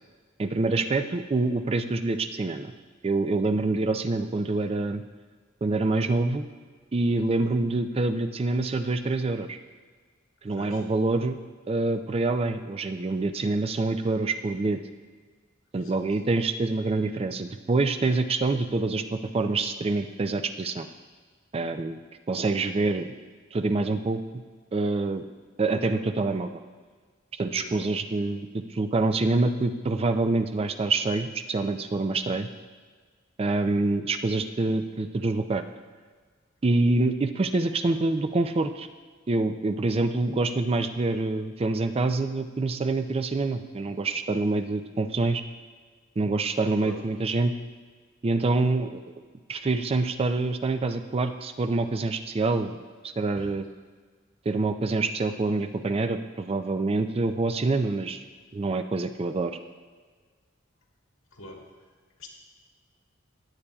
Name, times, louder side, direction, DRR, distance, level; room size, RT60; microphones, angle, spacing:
voice 1, 0.4-2.7 3.0-5.0 5.6-6.5 6.9-9.6 10.4-11.4 11.7-14.8 15.7-20.9 21.5-22.0 22.3-23.1 23.5-24.4 24.7-25.2 25.6-26.6 27.4-32.5 33.4-35.6 36.6-38.9 39.3-45.4 46.2-47.5 48.2-49.0 49.5-52.8 53.0-53.6 54.5-58.2 58.5-59.5, right 3 dB, 30° right, 8 dB, 0.4 m, -26 dB
voice 2, 10.5-10.8 15.7-16.1 27.5-27.9 46.8-47.0 53.4-53.5 61.4-61.7 62.2-62.3, left 1 dB, 80° left, -1 dB, 2.0 m, -44 dB
16.5 x 8.6 x 2.3 m, 1.5 s
head